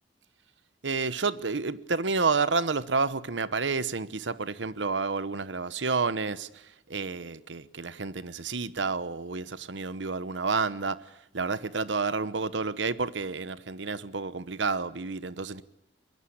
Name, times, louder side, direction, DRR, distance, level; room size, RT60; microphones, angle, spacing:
voice 1, 0.8-6.6 6.9-11.0 11.3-15.6, right 4 dB, 85° right, 1.0 m, -30 dB
23.0 x 22.5 x 8.7 m
head